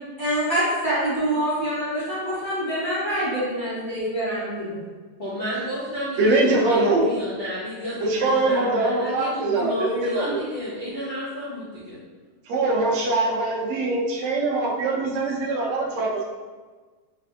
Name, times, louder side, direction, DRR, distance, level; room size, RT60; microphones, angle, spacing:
voice 1, 0.2-4.8, right 1 dB, 15° left, -12 dB, 1.4 m, -25 dB
voice 2, 5.2-12.0, equal, 70° left, -10 dB, 0.5 m, -31 dB
voice 3, 6.2-7.1 8.0-10.4 12.5-16.2, right 2 dB, 85° right, -3 dB, 0.6 m, -22 dB
3.3 x 3.2 x 2.7 m, 1.4 s
omnidirectional pair, 2.1 m